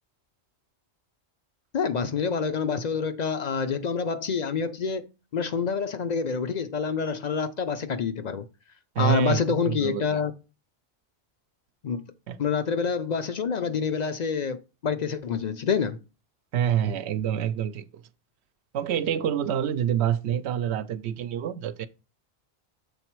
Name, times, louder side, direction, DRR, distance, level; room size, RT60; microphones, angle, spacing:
voice 1, 1.7-5.1 5.3-8.4 9.0-10.3 11.8-12.1 12.4-16.0, left 6 dB, 50° left, 0.6 m, -27 dB
voice 2, 9.0-10.2 12.3-12.4 16.5-17.9 18.7-21.9, right 9 dB, 80° right, 0.9 m, -27 dB
7.1 x 4.0 x 4.5 m
omnidirectional pair, 1.1 m